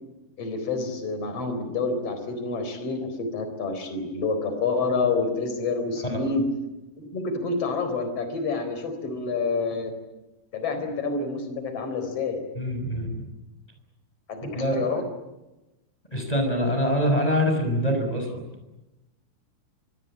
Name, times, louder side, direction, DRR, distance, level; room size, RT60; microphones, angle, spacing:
voice 1, 0.4-6.4 7.0-9.9 10.5-12.4 14.3-15.0, left 4 dB, 40° left, 8 dB, 5.0 m, -28 dB
voice 2, 12.5-13.3 14.6-14.9 16.1-18.5, equal, 10° left, 3 dB, 5.7 m, -25 dB
26.0 x 24.5 x 8.8 m, 1.0 s
omnidirectional pair, 4.5 m